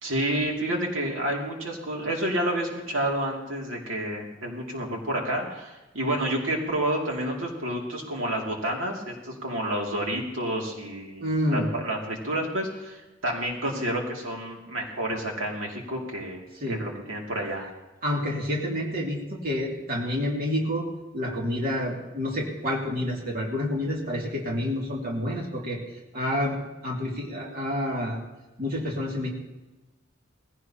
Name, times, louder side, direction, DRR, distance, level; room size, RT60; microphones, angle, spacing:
voice 1, 0.0-16.4 16.7-17.7, right 1 dB, 80° right, -1 dB, 2.6 m, -29 dB
voice 2, 11.2-11.7 16.6-16.8 18.0-20.9 21.1-25.8 26.1-26.5 26.8-28.2 28.6-29.3, left 1 dB, 50° right, -2 dB, 2.5 m, -28 dB
20.5 x 16.0 x 2.9 m, 1.1 s
head